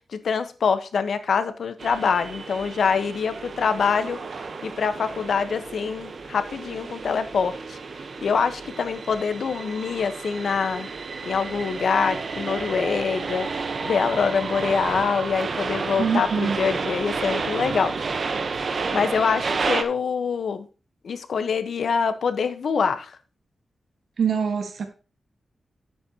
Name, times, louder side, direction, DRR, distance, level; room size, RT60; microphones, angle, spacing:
voice 1, 0.1-4.2 4.6-7.8 8.2-10.9 11.2-13.5 13.8-17.9 18.9-20.7 21.0-23.1, left 5 dB, 65° left, 1.2 m, -25 dB
sound 1, 1.8-19.8, right 4 dB, 50° right, 1.1 m, -31 dB
voice 2, 16.0-16.6 24.2-24.9, right 6 dB, 65° right, 1.6 m, -24 dB
11.0 x 8.5 x 2.9 m
wide cardioid pair, 140°, 0 cm